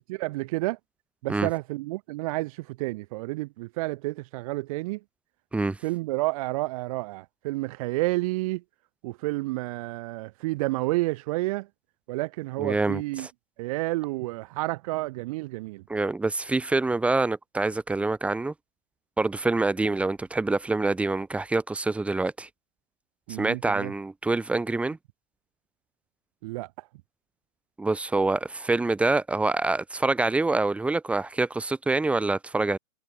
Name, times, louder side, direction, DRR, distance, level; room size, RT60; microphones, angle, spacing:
voice 1, 0.1-0.8 1.2-5.0 5.8-8.6 9.0-11.7 12.1-13.3 13.6-15.8 23.3-23.9 26.4-26.9, right 21 dB, 25° right, 5.1 m, -30 dB
voice 2, 12.6-13.3 15.9-18.5 19.2-22.5 23.4-25.0 27.8-32.8, right 3 dB, 5° right, 6.0 m, -26 dB
hypercardioid pair, 170°, 39 cm